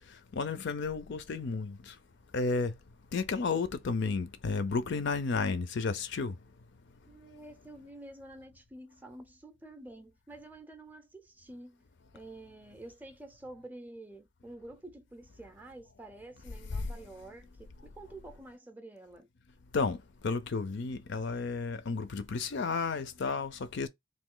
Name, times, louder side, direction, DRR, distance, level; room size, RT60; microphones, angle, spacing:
voice 1, 0.3-1.9 2.3-2.7 3.1-6.3 16.8-16.9 19.7-20.0 20.2-23.9, left 4 dB, 55° left, 0.5 m, -32 dB
voice 2, 7.1-11.8 12.1-19.3, right 2 dB, 10° right, 0.5 m, -49 dB
3.1 x 2.7 x 3.7 m
head